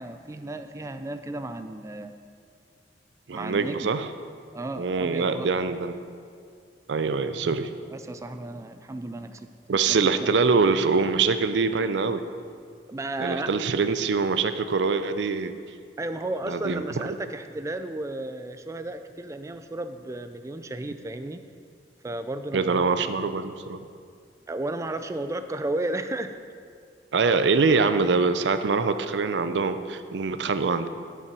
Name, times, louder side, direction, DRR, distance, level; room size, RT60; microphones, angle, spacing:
voice 1, 0.0-2.1 3.3-3.9 4.5-5.5 7.9-9.5 9.9-10.0 10.5-10.6 12.9-13.5 16.0-21.4 22.0-22.8 24.5-26.4, right 2 dB, 20° right, 9 dB, 0.3 m, -33 dB
voice 2, 3.3-4.1 4.8-6.0 6.9-7.7 9.7-12.2 13.2-15.5 16.4-16.8 22.5-23.8 27.1-30.9, right 4 dB, 85° right, 11 dB, 0.5 m, -24 dB
9.8 x 5.7 x 6.0 m, 2.2 s
head